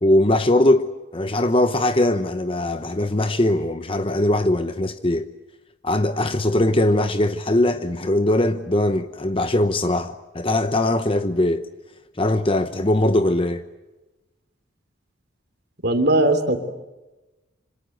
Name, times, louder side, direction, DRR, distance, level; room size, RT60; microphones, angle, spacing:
voice 1, 0.0-5.3 5.8-11.7 12.1-13.6, left 1 dB, 25° left, 0.9 m, -21 dB
voice 2, 15.8-16.6, right 1 dB, 50° right, 3.2 m, -18 dB
27.0 x 26.0 x 8.0 m
head